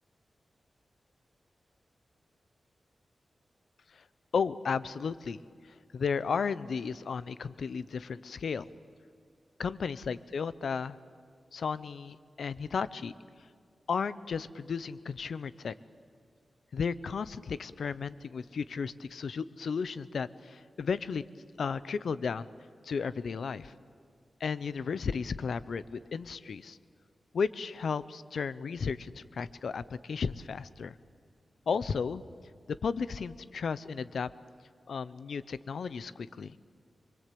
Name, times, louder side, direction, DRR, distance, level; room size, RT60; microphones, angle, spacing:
voice 1, 4.3-5.4 5.9-8.6 9.6-11.0 11.5-13.1 13.9-15.7 16.7-21.2 21.6-22.5 22.8-23.7 24.4-26.8 27.3-30.9 31.7-32.2 32.8-34.3 34.9-36.5, left 5 dB, 80° left, 16 dB, 0.7 m, -34 dB
25.0 x 23.5 x 8.5 m, 2.2 s
wide cardioid pair, 120°, 0 cm